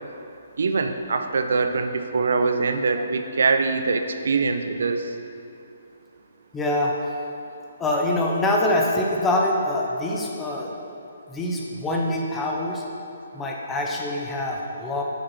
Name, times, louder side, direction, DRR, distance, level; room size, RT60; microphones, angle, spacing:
voice 1, 0.6-5.1, right 4 dB, 65° right, 7 dB, 0.5 m, -23 dB
voice 2, 6.5-6.9 7.8-10.7 11.3-12.8 13.3-15.0, left 1 dB, 15° left, -1 dB, 0.7 m, -24 dB
7.8 x 5.1 x 4.3 m, 2.7 s
figure-of-eight pair, 135°, 0 cm